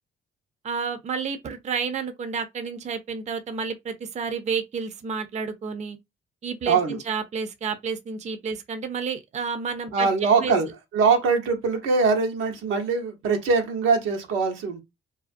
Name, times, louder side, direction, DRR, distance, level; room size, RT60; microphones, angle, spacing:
voice 1, 0.6-6.0 6.4-10.1 10.4-10.6, right 5 dB, 35° right, 0.4 m, -30 dB
voice 2, 6.7-7.0 9.9-10.7 10.9-14.8, right 4 dB, 85° right, 0.7 m, -22 dB
2.3 x 2.2 x 2.5 m
cardioid pair, 90°, 20 cm